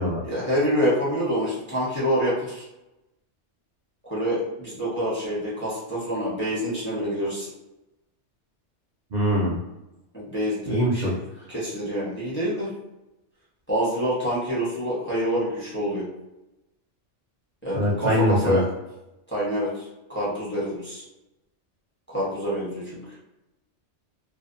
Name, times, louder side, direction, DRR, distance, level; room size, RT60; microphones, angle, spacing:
voice 1, 0.2-2.6 4.0-7.5 10.1-11.1 11.5-12.7 13.7-16.1 17.6-18.7 19.3-21.0 22.1-23.0, equal, 10° left, -8 dB, 0.7 m, -26 dB
voice 2, 9.1-9.5 10.7-11.1 17.7-18.6, equal, 55° right, -4 dB, 0.5 m, -22 dB
2.5 x 2.2 x 2.5 m, 0.96 s
omnidirectional pair, 1.2 m